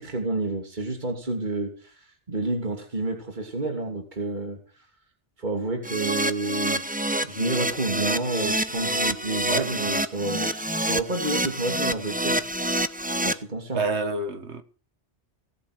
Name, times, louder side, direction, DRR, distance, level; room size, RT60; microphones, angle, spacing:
voice 1, 0.0-1.9 2.3-4.6 5.4-12.4 13.2-13.8, right 2 dB, 40° right, 3.1 m, -29 dB
Keyboard (musical), 5.8-13.3, right 1 dB, 10° right, 0.7 m, -27 dB
voice 2, 13.7-14.6, right 3 dB, 75° right, 1.8 m, -27 dB
18.0 x 8.5 x 6.6 m
omnidirectional pair, 1.2 m